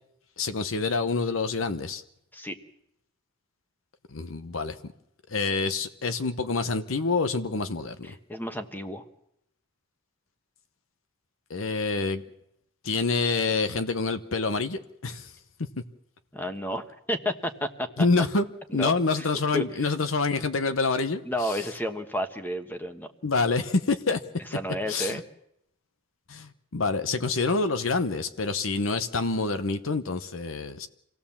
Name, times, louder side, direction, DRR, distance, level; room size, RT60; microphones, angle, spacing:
voice 1, 0.4-2.0 4.1-4.8 5.3-8.1 11.5-12.2 12.8-15.3 18.0-18.4 18.7-21.2 23.2-24.2 24.9-25.2 26.3-30.9, left 3 dB, 75° left, 11 dB, 1.0 m, -27 dB
voice 2, 8.0-9.0 16.3-18.1 18.7-18.9 19.2-19.3 19.5-19.9 21.2-23.1 24.5-25.2, equal, 10° left, 7 dB, 1.3 m, -31 dB
26.0 x 17.0 x 7.2 m, 0.80 s
head